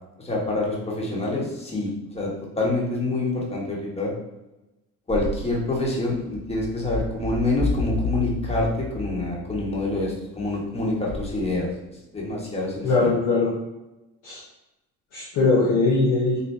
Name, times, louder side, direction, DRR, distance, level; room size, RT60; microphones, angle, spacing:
voice 1, 0.2-2.3 2.6-4.1 5.1-11.7 12.1-13.1, left 2 dB, 20° left, -3 dB, 1.4 m, -26 dB
voice 2, 12.8-13.5 14.2-14.4 15.1-16.4, left 3 dB, 70° left, -6 dB, 1.0 m, -20 dB
4.3 x 2.6 x 3.3 m, 0.98 s
supercardioid pair, 80°, 32 cm